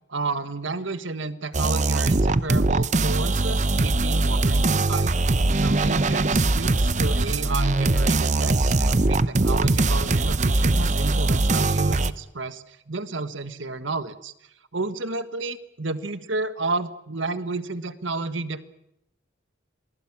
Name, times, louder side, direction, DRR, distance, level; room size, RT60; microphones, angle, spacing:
voice 1, 0.1-5.3 5.6-14.3 14.7-18.6, right 3 dB, 75° right, 12 dB, 1.5 m, -31 dB
sound 1, 1.5-12.1, right 2 dB, 35° right, 0.8 m, -21 dB
27.5 x 20.0 x 7.3 m, 0.85 s
head